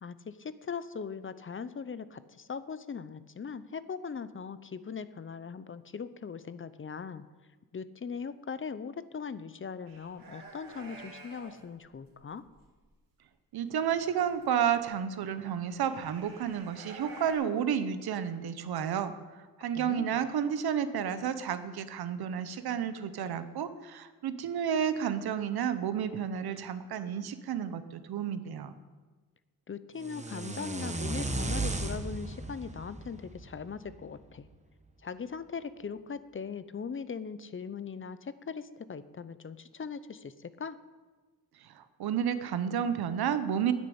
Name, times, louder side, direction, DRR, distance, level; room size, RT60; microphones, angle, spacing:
voice 1, 0.0-7.2 7.7-12.4 19.6-20.2 29.7-34.5 35.0-40.8, left 6 dB, 35° left, 14 dB, 0.7 m, -40 dB
sound 1, 9.9-11.6 12.1-12.6 13.8-14.9 15.7-17.3, right 3 dB, 65° right, 3.2 m, -49 dB
voice 2, 13.5-19.1 19.6-28.7 41.6-43.7, right 8 dB, 90° right, 11 dB, 1.0 m, -31 dB
sound 2, 30.0-34.1, right 2 dB, 20° right, 1.2 m, -35 dB
10.0 x 9.6 x 8.7 m, 1.3 s
cardioid pair, 100°, 36 cm